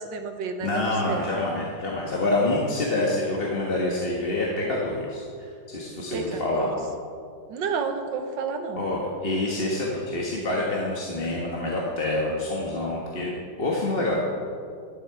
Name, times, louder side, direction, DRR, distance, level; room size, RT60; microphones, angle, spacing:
voice 1, 0.0-0.8 1.1-1.3 6.1-6.7 7.5-8.8, right 5 dB, 80° right, 6 dB, 1.7 m, -30 dB
voice 2, 0.6-6.7 8.7-14.2, left 2 dB, 35° left, -3 dB, 1.4 m, -27 dB
12.5 x 11.0 x 4.8 m, 2.3 s
omnidirectional pair, 2.0 m